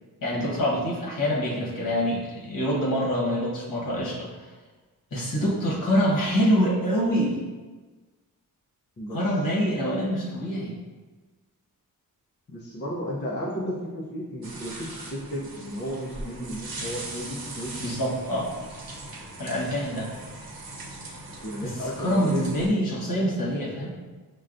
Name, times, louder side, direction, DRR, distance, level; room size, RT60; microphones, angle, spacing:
voice 1, 0.2-4.5 5.1-7.4 9.1-10.7 17.8-18.5 19.4-20.1 21.6-23.9, equal, 65° left, -5 dB, 1.1 m, -25 dB
voice 2, 12.5-17.8 21.4-22.4, equal, 30° left, -5 dB, 0.5 m, -33 dB
sound 1, 14.4-22.7, right 2 dB, 80° right, 0.8 m, -40 dB
6.1 x 2.2 x 2.5 m, 1.3 s
wide cardioid pair, 160°, 35 cm